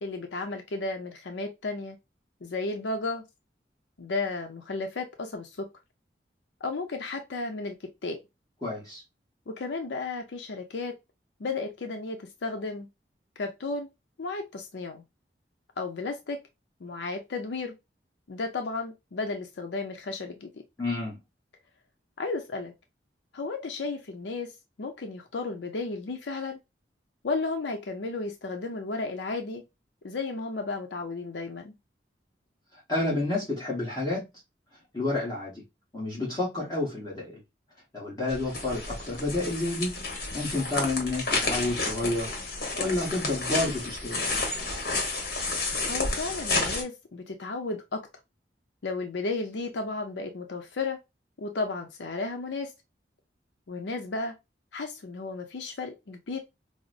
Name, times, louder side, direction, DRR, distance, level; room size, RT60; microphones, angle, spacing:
voice 1, 0.0-2.0 2.4-3.2 4.0-5.7 6.6-8.2 9.5-10.9 11.4-12.9 13.4-13.9 14.2-15.0 15.8-16.4 16.8-17.8 18.3-20.6 22.2-22.7 23.3-24.5 24.8-26.6 27.2-29.6 30.0-31.7 45.9-48.0 48.8-51.0 51.4-52.7 53.7-54.3 54.7-56.4, left 3 dB, 85° left, 0.5 m, -33 dB
voice 2, 8.6-9.0 20.8-21.2 32.9-34.2 34.9-35.6 35.9-37.4 37.9-40.0 40.3-42.3 42.8-44.4, left 2 dB, 20° left, 1.1 m, -30 dB
sound 1, 38.3-46.8, left 3 dB, 60° left, 1.2 m, -31 dB
4.9 x 2.0 x 2.4 m
head